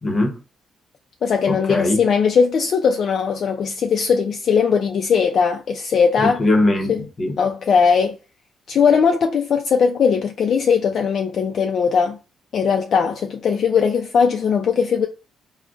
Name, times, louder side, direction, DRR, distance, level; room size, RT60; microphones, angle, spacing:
voice 1, 0.0-0.4 1.5-2.0 6.2-7.4, left 2 dB, 35° left, 0.8 m, -20 dB
voice 2, 1.2-6.4 6.9-7.0 7.4-8.2 8.7-12.2 12.5-15.1, left 6 dB, 60° left, 0.3 m, -19 dB
3.6 x 2.0 x 2.4 m
cardioid pair, 90°, 0 cm